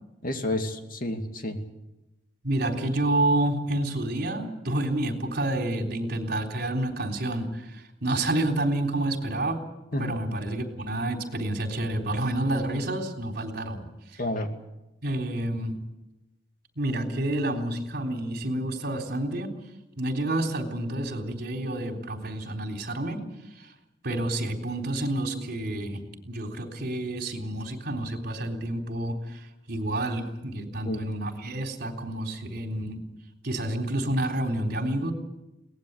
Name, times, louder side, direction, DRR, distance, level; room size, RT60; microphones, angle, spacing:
voice 1, 0.2-1.6 9.9-10.2 14.2-14.5 30.9-31.0, left 1 dB, 50° left, 5 dB, 2.5 m, -30 dB
voice 2, 2.4-9.6 9.9-14.2 15.0-15.8 16.8-19.6 20.0-23.2 23.6-23.7 24.0-33.0 33.4-35.1, right 1 dB, 55° right, 3 dB, 3.7 m, -29 dB
23.0 x 18.5 x 8.3 m, 0.94 s
head